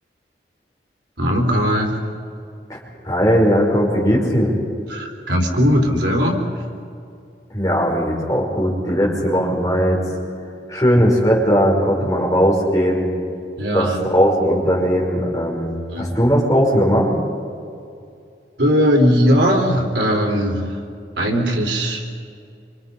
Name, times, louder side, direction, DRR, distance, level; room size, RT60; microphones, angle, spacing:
voice 1, 1.2-2.0 4.9-6.6 13.6-14.0 15.9-16.1 18.6-20.8 21.2-22.0, equal, 90° right, 2 dB, 4.0 m, -19 dB
voice 2, 3.0-4.5 7.5-10.0 10.7-13.0 13.7-13.8 14.1-15.7 16.0-17.1, equal, 20° left, -2 dB, 5.6 m, -18 dB
27.0 x 26.5 x 5.6 m, 2.5 s
head